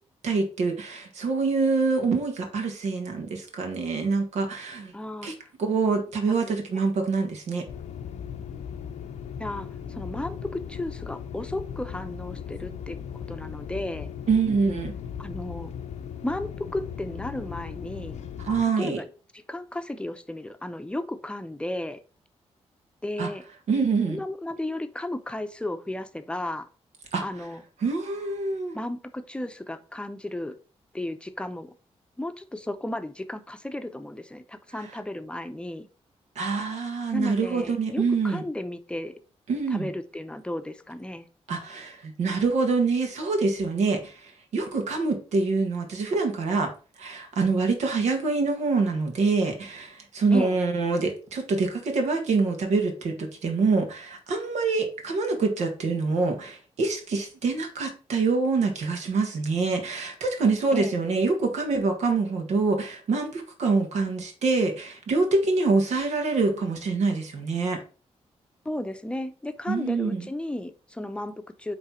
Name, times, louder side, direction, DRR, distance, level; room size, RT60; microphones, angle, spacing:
voice 1, 0.2-4.9 5.2-7.7 14.3-14.9 18.4-19.0 23.2-23.3 23.7-24.2 27.1-27.2 27.8-28.8 36.4-38.4 39.5-39.9 41.5-46.7 47.0-67.8 69.7-70.2, right 4 dB, 90° right, 4 dB, 1.7 m, -25 dB
voice 2, 4.9-5.3 9.4-14.1 15.2-15.7 16.2-18.2 18.8-19.1 19.3-22.0 23.0-23.4 24.1-26.7 27.2-27.6 28.7-30.6 30.9-31.7 32.2-35.9 37.1-39.1 39.7-41.3 50.3-50.6 60.7-61.0 68.6-71.7, left 1 dB, 10° left, 9 dB, 0.7 m, -34 dB
sound 1, 7.7-18.6, left 8 dB, 90° left, 0.7 m, -38 dB
8.8 x 3.3 x 4.4 m, 0.37 s
wide cardioid pair, 120°, 11 cm